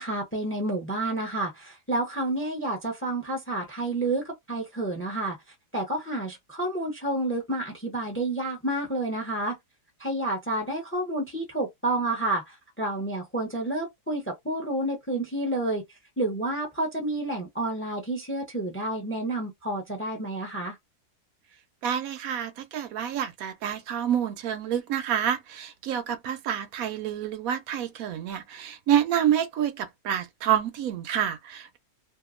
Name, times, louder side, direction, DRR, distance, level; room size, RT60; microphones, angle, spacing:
voice 1, 0.0-5.4 5.7-9.6 10.0-15.8 16.2-20.8, right 2 dB, 10° left, 0.6 m, -29 dB
voice 2, 21.8-31.8, right 9 dB, 70° right, 1.0 m, -28 dB
2.8 x 2.4 x 2.5 m
omnidirectional pair, 1.6 m